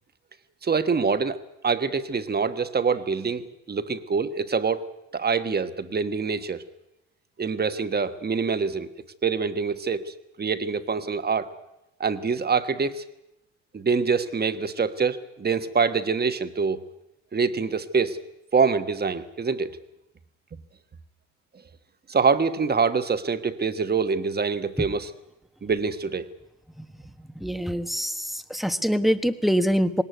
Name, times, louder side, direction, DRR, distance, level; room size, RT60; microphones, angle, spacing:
voice 1, 0.6-1.4 1.6-4.9 5.1-6.6 7.4-8.9 9.2-11.5 12.0-13.0 13.7-16.8 17.3-18.2 18.5-19.8 22.1-25.1 25.6-26.3, right 5 dB, 30° right, 10 dB, 1.4 m, -25 dB
voice 2, 27.3-30.0, equal, ahead, 10 dB, 1.2 m, -24 dB
20.0 x 18.5 x 9.3 m, 0.87 s
cardioid pair, 90°, 30 cm